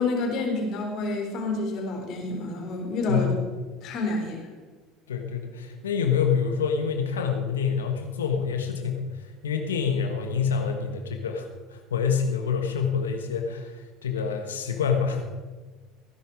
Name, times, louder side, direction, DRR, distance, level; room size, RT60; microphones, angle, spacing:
voice 1, 0.0-3.3 3.8-4.5, left 2 dB, 55° left, 1 dB, 4.1 m, -28 dB
voice 2, 5.1-9.0 9.4-13.7 14.0-15.2, left 6 dB, 85° left, 4 dB, 1.4 m, -26 dB
16.5 x 10.5 x 5.0 m, 1.3 s
hypercardioid pair, 70°, 0 cm